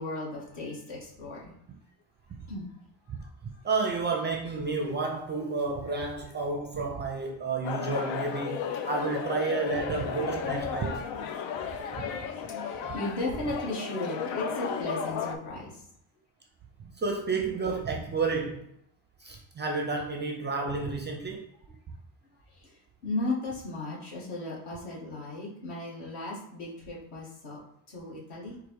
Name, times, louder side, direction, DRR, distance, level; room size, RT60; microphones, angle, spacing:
voice 1, 0.0-1.5 2.5-2.7 3.1-3.3 7.1-7.5 9.1-9.3 9.6-9.7 10.6-10.7 11.3-11.5 12.5-15.8 22.5-27.6 27.9-28.6, left 2 dB, 60° left, -5 dB, 1.9 m, -36 dB
voice 2, 3.6-11.0 12.0-12.1 16.8-18.7 19.2-21.5, right 4 dB, 25° right, 2 dB, 0.4 m, -31 dB
sound 1, 7.6-15.4, left 7 dB, 85° left, 0.6 m, -34 dB
4.7 x 2.4 x 4.6 m, 0.72 s
cardioid pair, 150°, 45 cm